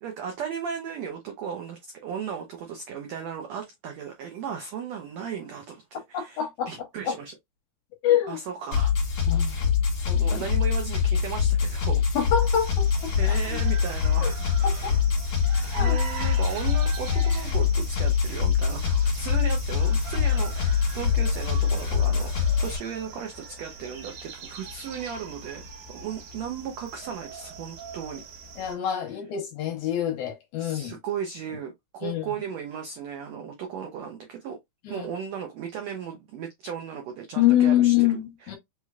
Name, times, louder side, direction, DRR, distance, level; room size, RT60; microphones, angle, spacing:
voice 1, 0.0-7.4 8.3-8.9 10.2-12.0 13.2-15.0 15.8-25.6 25.9-28.2 30.6-34.6 34.9-38.6, right 7 dB, 85° right, 1.5 m, -36 dB
voice 2, 6.1-6.7 7.1-7.2 8.0-8.4 9.3-9.5 10.1-10.4 12.2-13.4 14.2-14.3 14.6-14.9 15.7-16.0 28.6-30.9 32.0-32.2 34.9-35.1 37.4-38.6, left 11 dB, 70° left, 2.1 m, -25 dB
sound 1, 8.7-22.8, left 7 dB, 45° left, 2.3 m, -24 dB
sound 2, 12.4-28.7, right 5 dB, 65° right, 2.3 m, -43 dB
5.3 x 3.2 x 2.3 m
omnidirectional pair, 4.0 m